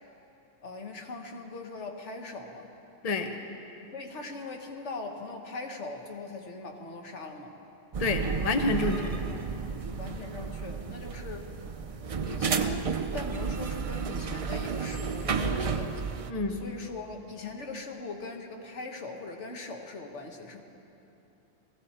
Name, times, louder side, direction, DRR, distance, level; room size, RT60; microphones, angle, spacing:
voice 1, 0.6-2.7 3.9-7.6 10.0-11.5 12.2-16.0 16.5-20.6, left 3 dB, 85° left, 3 dB, 1.5 m, -40 dB
sound 1, 7.9-16.3, right 5 dB, 45° right, 0.5 m, -32 dB
voice 2, 8.0-9.1 16.3-16.6, left 3 dB, 35° left, 5 dB, 0.9 m, -28 dB
20.5 x 15.0 x 4.3 m, 2.9 s
omnidirectional pair, 1.2 m